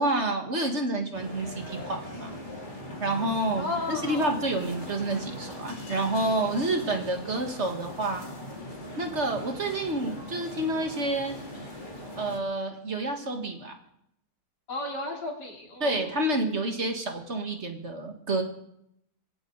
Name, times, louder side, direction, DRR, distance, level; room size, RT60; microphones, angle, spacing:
voice 1, 0.0-2.3 3.0-8.2 9.0-11.4 12.2-13.8 15.8-18.4, right 2 dB, 45° right, 4 dB, 2.0 m, -29 dB
sound 1, 1.1-12.4, left 1 dB, 30° left, 3.0 m, -40 dB
voice 2, 3.5-4.4 14.7-16.1, left 2 dB, 85° left, -1 dB, 4.1 m, -34 dB
22.0 x 16.5 x 4.0 m, 0.75 s
omnidirectional pair, 1.8 m